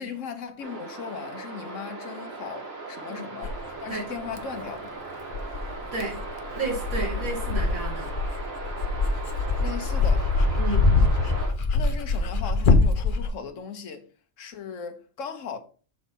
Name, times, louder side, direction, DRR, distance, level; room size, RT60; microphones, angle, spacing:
voice 1, 0.0-5.0 9.6-10.3 11.7-14.1 14.4-15.6, left 6 dB, 70° left, 1.3 m, -37 dB
sound 1, 0.6-11.5, right 3 dB, 50° right, 2.1 m, -38 dB
Dog, 3.4-3.6 4.3-4.4 5.3-13.3, left 3 dB, 45° left, 0.8 m, -23 dB
voice 2, 6.5-8.1 10.6-11.0, right 3 dB, 90° right, 2.8 m, -31 dB
6.2 x 4.2 x 5.4 m
omnidirectional pair, 1.4 m